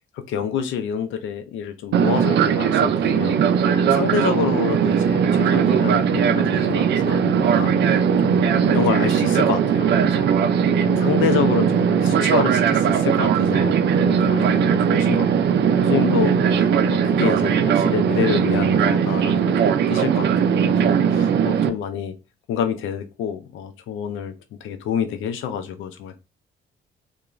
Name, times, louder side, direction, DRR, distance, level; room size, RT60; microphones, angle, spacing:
voice 1, 0.1-22.1 22.5-24.3 24.6-26.2, left 7 dB, 80° left, 0.5 m, -28 dB
Fixed-wing aircraft airplane, 1.9-21.7, right 7 dB, 60° right, 0.4 m, -19 dB
2.3 x 2.2 x 3.1 m
cardioid pair, 90°, 20 cm